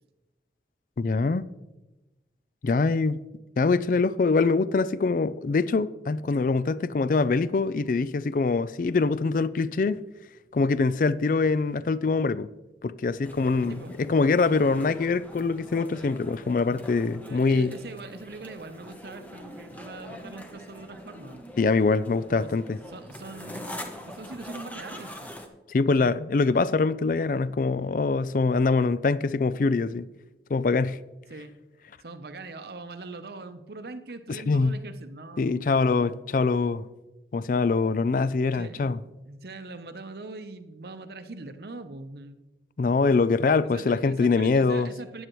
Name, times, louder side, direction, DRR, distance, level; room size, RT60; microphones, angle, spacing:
voice 1, 1.0-1.4 2.6-3.2 3.6-10.0 10.5-12.5 12.8-17.7 21.6-22.8 25.7-30.1 30.5-31.0 34.3-34.8 35.4-36.8 37.3-39.0 42.8-44.9, left 4 dB, 50° left, 0.3 m, -24 dB
sound 1, 13.2-25.5, left 1 dB, 10° left, 0.9 m, -43 dB
voice 2, 17.2-21.4 22.3-25.3 26.0-26.2 31.3-31.5 32.0-36.3 38.5-38.9 39.2-42.4 43.6-45.3, right 3 dB, 60° right, 0.8 m, -42 dB
14.5 x 9.8 x 3.1 m
head